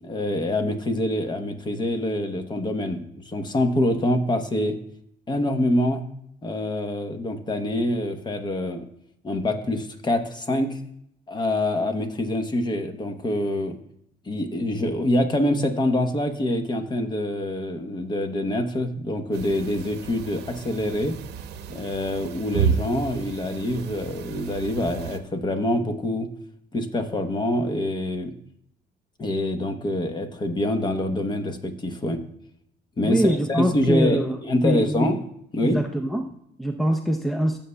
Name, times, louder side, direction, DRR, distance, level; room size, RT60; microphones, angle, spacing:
voice 1, 0.0-4.8 5.3-6.0 6.4-8.9 9.2-10.8 11.3-13.8 14.3-21.2 21.7-26.3 26.7-28.3 29.2-32.2 33.0-35.2 35.5-35.8, left 1 dB, 25° left, 8 dB, 1.0 m, -25 dB
sound 1, 19.3-25.2, right 8 dB, 80° right, 0.8 m, -32 dB
voice 2, 33.0-34.4 34.6-35.1 35.6-37.6, equal, ahead, 5 dB, 0.5 m, -24 dB
15.0 x 7.0 x 2.2 m, 0.73 s
cardioid pair, 110°, 17 cm